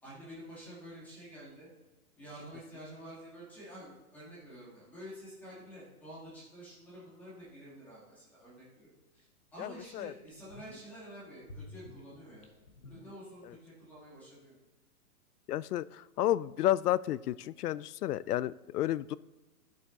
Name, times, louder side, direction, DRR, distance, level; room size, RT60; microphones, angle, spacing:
voice 1, 0.0-1.7 2.1-12.5 12.8-14.6, equal, 5° left, -8 dB, 2.0 m, -49 dB
sound 1, 9.2-9.3 9.8-9.9 10.2-11.0 11.4-13.7 13.9-14.0, left 2 dB, 25° left, 0.7 m, -51 dB
voice 2, 15.5-15.8 16.2-19.2, left 13 dB, 85° left, 20 dB, 0.5 m, -31 dB
11.0 x 7.5 x 3.9 m, 1.1 s
hypercardioid pair, 180°, 45 cm